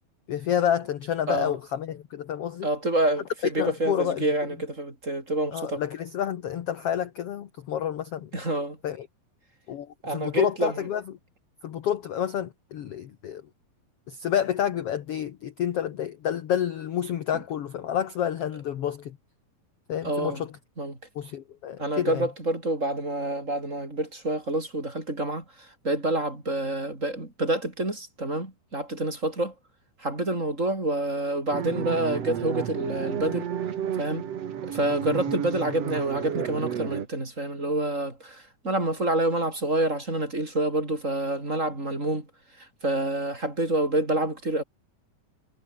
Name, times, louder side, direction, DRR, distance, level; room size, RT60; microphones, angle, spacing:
voice 1, 0.3-2.7 3.6-4.2 5.5-8.3 8.8-9.1 9.7-11.0 11.6-13.4 14.1-19.2 19.9-20.5 21.1-22.3 35.1-35.2, left 10 dB, 60° left, 1.6 m, -29 dB
voice 2, 2.6-5.8 8.3-8.8 10.0-10.8 20.0-20.4 20.8-21.0 21.8-25.4 25.8-29.5 30.0-33.5 34.0-34.3 34.7-42.3 42.6-44.6, right 1 dB, 20° right, 5.1 m, -27 dB
sound 1, 31.5-37.1, right 9 dB, 50° right, 2.4 m, -32 dB
omnidirectional pair, 4.2 m